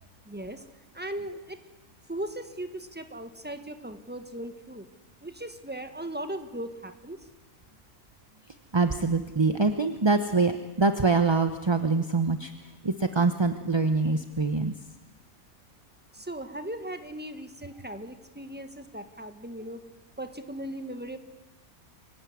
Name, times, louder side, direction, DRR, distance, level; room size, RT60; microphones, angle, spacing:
voice 1, 0.2-0.7 0.9-1.6 2.1-4.9 5.2-7.3 16.1-19.8 20.2-21.2, right 1 dB, 5° right, 8 dB, 1.4 m, -38 dB
voice 2, 8.7-14.7, right 3 dB, 25° right, 8 dB, 0.7 m, -25 dB
25.0 x 16.0 x 9.7 m, 1.1 s
omnidirectional pair, 1.5 m